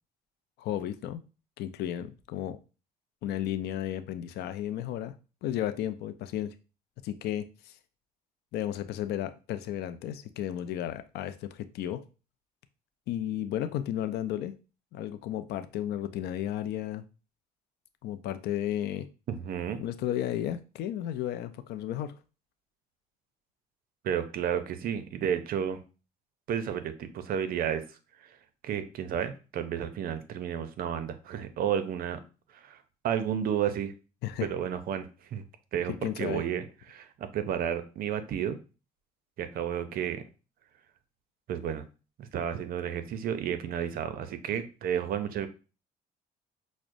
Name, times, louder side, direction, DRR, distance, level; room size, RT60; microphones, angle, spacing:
voice 1, 0.6-1.2 1.6-2.6 3.2-5.1 5.4-6.5 7.0-7.7 8.5-12.0 13.1-14.6 14.9-17.0 18.0-19.1 19.8-22.1 34.2-34.5 35.9-36.4, left 11 dB, 75° left, 11 dB, 0.4 m, -33 dB
voice 2, 19.3-19.8 24.0-25.8 26.5-27.8 28.2-28.4 28.6-32.2 32.5-32.8 33.0-33.9 34.4-35.4 35.7-38.6 39.4-40.2 41.5-41.8 42.2-45.5, right 9 dB, 60° right, 10 dB, 0.6 m, -32 dB
6.0 x 2.1 x 2.6 m, 0.33 s
cardioid pair, 110°, 17 cm